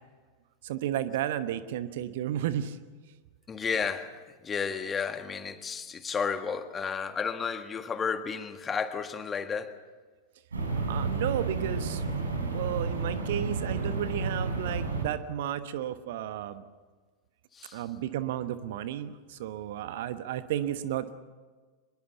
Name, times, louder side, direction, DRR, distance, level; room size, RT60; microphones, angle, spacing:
voice 1, 0.6-2.8 10.7-12.0 12.3-16.6 17.7-21.1, right 11 dB, 55° right, 1.1 m, -33 dB
voice 2, 3.5-9.7 17.5-17.9, left 6 dB, 20° left, 1.6 m, -32 dB
sound 1, 10.5-15.0, right 3 dB, 75° right, 5.4 m, -31 dB
25.0 x 21.0 x 7.1 m
figure-of-eight pair, 90°, 0 cm